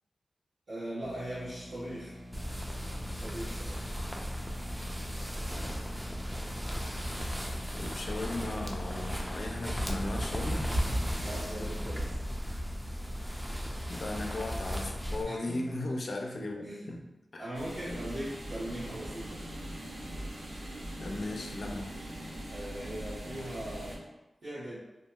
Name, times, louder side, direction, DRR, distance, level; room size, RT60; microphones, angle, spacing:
voice 1, 0.7-2.1 3.0-3.8 11.2-12.2 15.2-15.8 16.6-16.9 17.4-19.4 22.5-24.0 24.4-24.8, right 1 dB, 90° right, -15 dB, 1.2 m, -40 dB
sound 1, 1.0-12.2, equal, 35° right, 1.2 m, -48 dB
sound 2, 2.3-15.2, equal, 5° right, 0.4 m, -35 dB
voice 2, 7.7-10.6 13.9-17.0 17.3-17.5 21.0-21.9, left 2 dB, 70° left, 1 dB, 0.4 m, -37 dB
sound 3, 17.5-24.0, right 1 dB, 65° right, 0.6 m, -41 dB
2.8 x 2.5 x 2.3 m, 0.99 s
wide cardioid pair, 80°, 0 cm